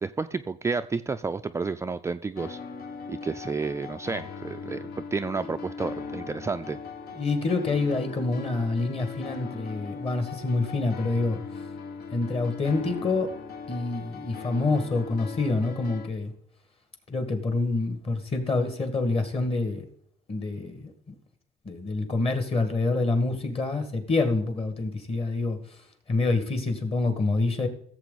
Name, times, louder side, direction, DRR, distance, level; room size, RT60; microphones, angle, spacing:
voice 1, 0.0-2.6 3.1-6.8, right 4 dB, 15° right, 8 dB, 0.4 m, -31 dB
sound 1, 2.4-16.1, left 5 dB, 65° left, 1.3 m, -39 dB
voice 2, 7.2-11.4 12.1-13.3 13.7-16.3 17.1-19.9 20.3-21.1 21.7-25.6 26.1-27.7, left 3 dB, 35° left, 7 dB, 2.0 m, -27 dB
16.0 x 7.5 x 4.1 m, 0.64 s
cardioid pair, 110°, 17 cm